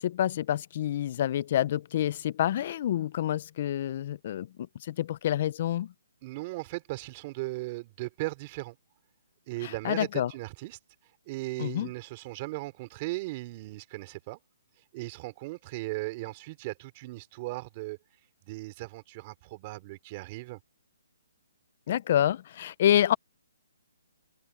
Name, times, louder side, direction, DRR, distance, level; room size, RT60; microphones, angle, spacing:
voice 1, 0.0-4.5 4.8-5.9 9.6-10.3 11.6-11.9 21.9-23.1, left 11 dB, 35° left, 0.4 m, -27 dB
voice 2, 6.2-8.8 9.5-10.8 11.3-14.4 14.9-18.0 18.5-20.6, right 21 dB, 25° right, 3.5 m, -37 dB
hypercardioid pair, 170°, 0 cm